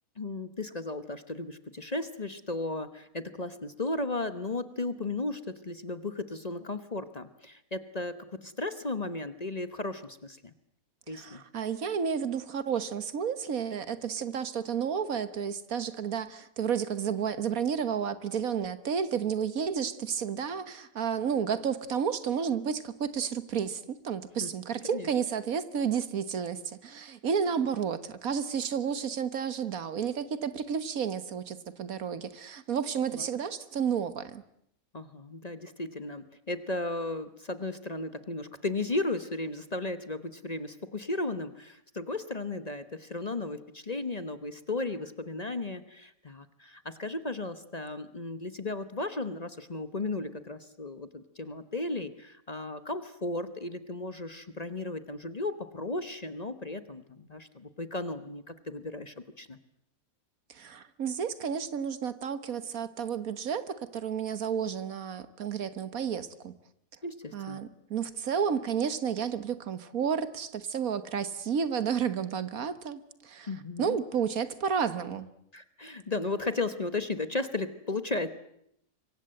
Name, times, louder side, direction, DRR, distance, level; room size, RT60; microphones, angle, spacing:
voice 1, 0.2-10.5 11.1-11.4 24.4-24.5 24.8-25.1 33.1-33.2 34.9-59.6 67.0-67.6 73.5-74.0 75.5-78.3, left 2 dB, 30° left, 1.1 m, -35 dB
voice 2, 11.1-34.4 60.5-66.5 67.3-73.5 73.8-75.3, right 7 dB, 70° right, 1.7 m, -31 dB
26.0 x 23.5 x 7.8 m
omnidirectional pair, 1.5 m